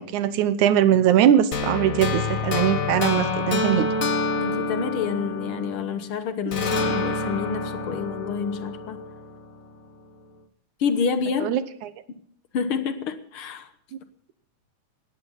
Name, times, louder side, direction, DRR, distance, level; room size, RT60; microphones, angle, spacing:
voice 1, 0.0-3.9 11.4-11.6, right 10 dB, 75° right, 14 dB, 2.3 m, -21 dB
sound 1, 1.5-6.1 6.5-9.6, left 3 dB, 90° left, 0.7 m, -27 dB
voice 2, 4.4-9.0 10.8-11.6 12.5-13.7, left 6 dB, 60° left, 10 dB, 1.5 m, -28 dB
19.0 x 15.0 x 4.1 m, 0.63 s
omnidirectional pair, 3.6 m